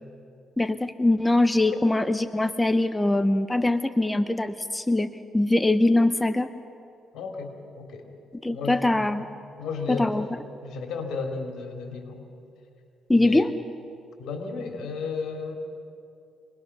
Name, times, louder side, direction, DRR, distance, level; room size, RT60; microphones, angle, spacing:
voice 1, 0.6-5.1 5.3-6.5 8.4-9.3 9.9-10.3 13.1-13.5, left 2 dB, 10° left, 10 dB, 0.7 m, -22 dB
voice 2, 7.1-8.1 8.5-9.2 9.6-10.3 10.6-12.2 13.1-13.5 14.2-15.5, left 4 dB, 75° left, 2 dB, 3.4 m, -33 dB
25.5 x 20.0 x 6.2 m, 2.5 s
cardioid pair, 90°, 0 cm